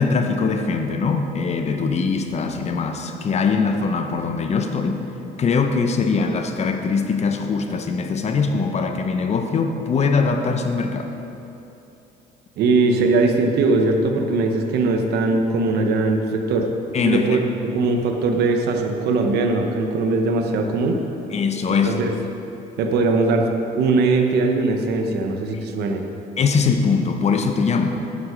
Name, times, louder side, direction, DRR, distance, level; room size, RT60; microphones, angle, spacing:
voice 1, 0.0-5.0 5.4-11.1 16.9-17.4 21.3-22.0 26.4-28.1, left 5 dB, 40° left, 6 dB, 0.8 m, -22 dB
voice 2, 12.6-16.7 17.0-17.4 17.7-21.0 21.8-22.1 22.8-23.5 23.8-26.1, right 3 dB, 75° right, 4 dB, 1.0 m, -20 dB
9.3 x 7.0 x 5.0 m, 2.9 s
cardioid pair, 110°, 17 cm